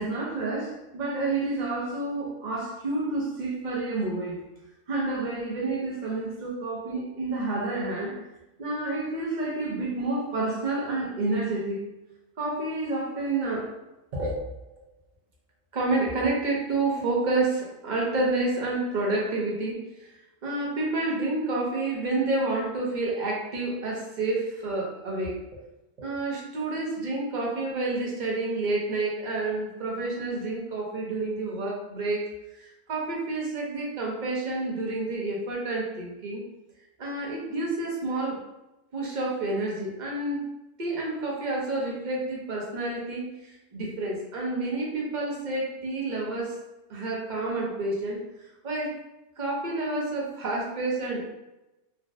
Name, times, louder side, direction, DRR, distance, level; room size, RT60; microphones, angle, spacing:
voice 1, 0.0-4.4 4.9-8.2 8.6-11.9 12.4-13.7 14.1-14.4 15.7-20.1 20.4-25.4 26.0-36.4 37.0-38.4 38.9-40.5 40.8-46.6 46.9-48.2 48.6-49.0 49.4-51.3, right 2 dB, 45° right, -3 dB, 0.8 m, -29 dB
3.5 x 2.1 x 2.5 m, 0.97 s
omnidirectional pair, 1.2 m